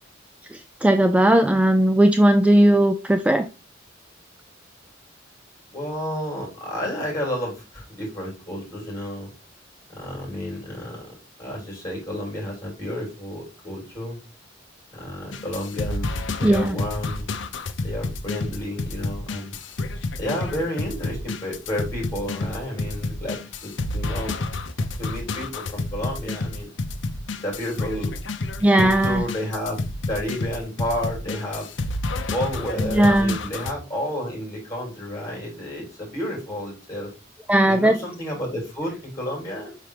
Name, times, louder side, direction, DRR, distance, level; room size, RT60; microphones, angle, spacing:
voice 1, 0.5-3.5 16.4-16.8 28.6-29.2 32.9-33.4 37.5-38.0, right 1 dB, 5° right, 0.3 m, -17 dB
voice 2, 5.7-9.3 9.9-11.0 11.4-14.2 14.9-17.3 17.8-19.5 20.2-24.4 25.0-26.7 27.4-28.1 28.8-29.8 30.1-31.7 32.3-37.1 37.7-39.7, left 1 dB, 20° left, 3.6 m, -31 dB
sound 1, 15.3-33.7, left 2 dB, 70° left, 0.7 m, -30 dB
5.7 x 5.0 x 3.2 m
head